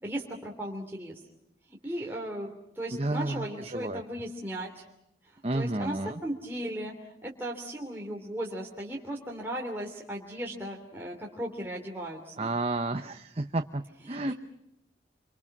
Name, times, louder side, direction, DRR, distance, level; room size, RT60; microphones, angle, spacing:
voice 1, 0.0-1.2 1.7-4.8 5.2-12.5 14.1-14.3, right 1 dB, 15° right, -1 dB, 3.0 m, -37 dB
voice 2, 2.9-4.0 5.4-6.2 12.4-14.3, right 2 dB, 35° right, 7 dB, 0.8 m, -31 dB
27.5 x 26.0 x 6.1 m, 0.83 s
head